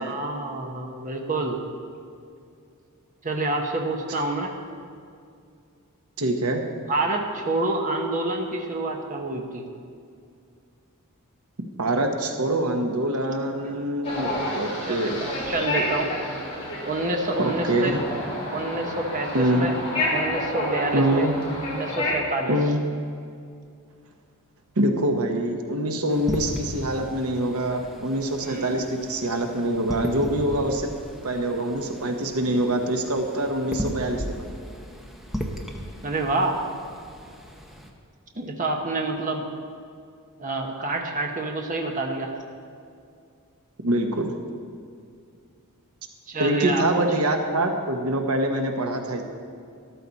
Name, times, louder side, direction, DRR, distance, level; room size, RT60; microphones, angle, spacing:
voice 1, 0.0-1.6 3.2-4.5 6.9-9.6 14.8-16.1 16.9-17.9 18.5-19.8 20.1-21.3 21.7-22.5 28.4-28.8 36.0-36.6 38.3-39.4 40.4-42.3 46.3-47.0, right 2 dB, 35° right, 2 dB, 1.1 m, -28 dB
voice 2, 6.2-6.6 11.8-15.2 17.4-18.0 19.3-19.7 20.9-21.3 22.5-22.8 24.8-30.9 31.2-34.4 43.8-44.3 46.4-49.2, right 1 dB, 70° right, 4 dB, 1.1 m, -24 dB
sound 1, 14.0-22.1, left 1 dB, 25° left, 3.5 m, -30 dB
sound 2, 26.1-37.9, equal, ahead, 1.0 m, -36 dB
13.5 x 12.5 x 4.1 m, 2.3 s
head